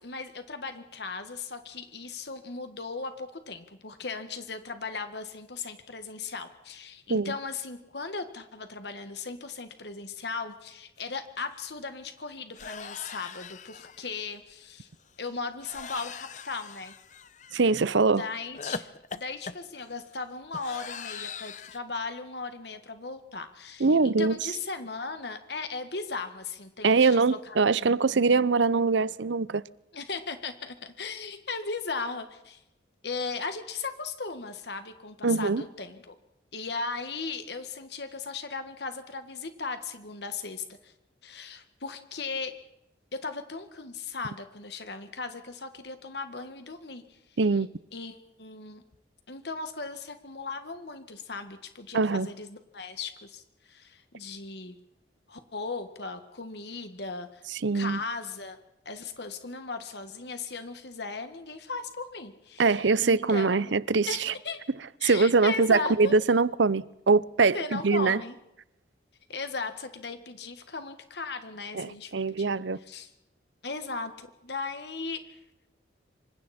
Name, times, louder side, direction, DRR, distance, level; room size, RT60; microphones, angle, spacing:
voice 1, 0.0-14.9 15.2-16.9 18.1-27.6 29.9-32.6 33.0-36.2 36.5-40.9 41.2-42.6 43.2-47.2 47.9-48.8 49.3-54.8 55.3-57.4 57.7-58.6 58.9-63.8 64.1-64.7 65.0-66.2 67.5-68.4 69.3-73.1 73.6-75.4, left 4 dB, 65° left, 1.7 m, -37 dB
sound 1, 11.1-11.2 11.5-11.7 12.5-14.2 15.6-17.8 18.5-21.8, left 5 dB, 40° left, 0.9 m, -41 dB
voice 2, 17.5-18.2 23.8-24.4 26.8-29.6 35.2-35.6 47.4-47.7 51.9-52.3 57.6-58.0 62.6-64.3 65.0-68.2 71.7-72.8, right 4 dB, 80° right, 0.7 m, -23 dB
27.5 x 26.0 x 4.4 m
head